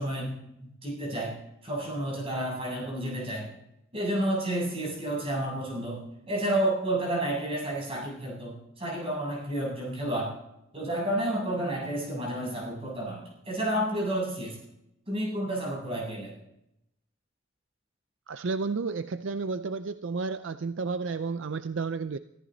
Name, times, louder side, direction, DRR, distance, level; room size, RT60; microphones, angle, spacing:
voice 1, 0.0-1.4 1.6-3.5 3.9-10.3 10.7-14.6 15.1-16.4, right 1 dB, 30° right, -3 dB, 7.7 m, -31 dB
voice 2, 18.3-22.2, right 4 dB, 65° right, 11 dB, 0.5 m, -31 dB
23.5 x 14.5 x 4.0 m, 0.83 s
head